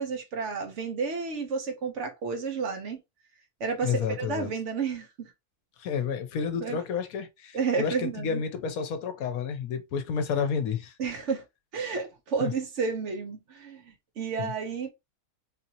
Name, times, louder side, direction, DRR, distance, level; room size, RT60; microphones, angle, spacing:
voice 1, 0.0-3.0 3.6-5.3 6.6-6.8 7.5-8.4 11.0-11.4 11.7-14.9, right 5 dB, 55° right, 1.1 m, -31 dB
voice 2, 3.8-4.5 5.8-10.9 12.4-12.5 14.4-14.5, left 6 dB, 70° left, 1.1 m, -30 dB
3.9 x 2.8 x 2.8 m
omnidirectional pair, 1.6 m